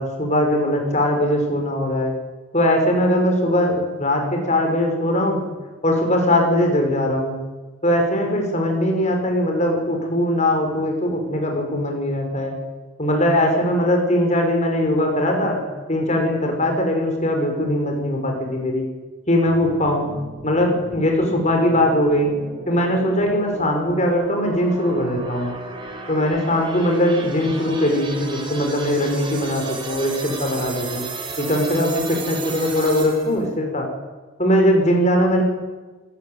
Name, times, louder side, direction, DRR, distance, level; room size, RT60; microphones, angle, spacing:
voice 1, 0.0-2.1 2.5-5.5 5.8-7.3 7.8-12.6 13.0-15.6 15.9-18.8 19.3-20.1 20.4-22.3 22.7-25.5 26.1-31.0 31.4-33.9 34.4-35.4, left 1 dB, 35° left, 2 dB, 5.1 m, -20 dB
sound 1, 19.4-33.4, right 2 dB, 25° right, 4.0 m, -34 dB
26.5 x 15.0 x 9.4 m, 1.3 s
head